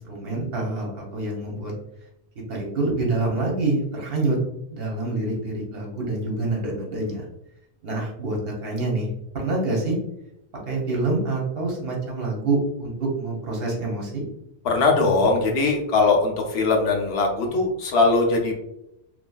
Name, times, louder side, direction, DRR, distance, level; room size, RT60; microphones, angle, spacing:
voice 1, 0.0-1.7 2.5-4.4 4.7-7.2 7.8-9.1 9.3-10.0 10.7-14.2, right 2 dB, 65° right, -1 dB, 1.0 m, -26 dB
voice 2, 14.6-18.5, left 3 dB, 75° left, 1 dB, 0.9 m, -20 dB
3.0 x 2.6 x 2.2 m, 0.82 s
omnidirectional pair, 1.1 m